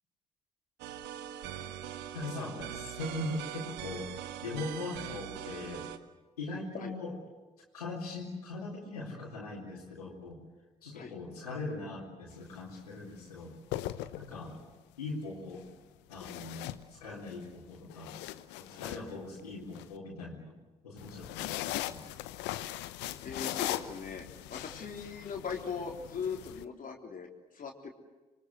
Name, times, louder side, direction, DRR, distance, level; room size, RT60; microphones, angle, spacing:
sound 1, 0.8-6.0, right 10 dB, 65° right, 1.6 m, -42 dB
voice 1, 2.1-4.1 4.4-5.9 6.4-7.2 7.7-10.4 10.8-13.5 14.1-14.7 15.0-15.7 16.1-18.2 18.6-20.5 20.8-22.0, left 2 dB, 85° left, -4 dB, 3.9 m, -40 dB
sound 2, 12.3-12.6 13.5-14.6 16.1-17.3 17.7-19.8 21.0-26.6, left 15 dB, 65° left, 1.0 m, -39 dB
voice 2, 22.9-27.3 27.5-27.9, left 6 dB, 45° left, 2 dB, 3.6 m, -40 dB
27.0 x 23.0 x 8.0 m, 1.2 s
figure-of-eight pair, 45°, 19 cm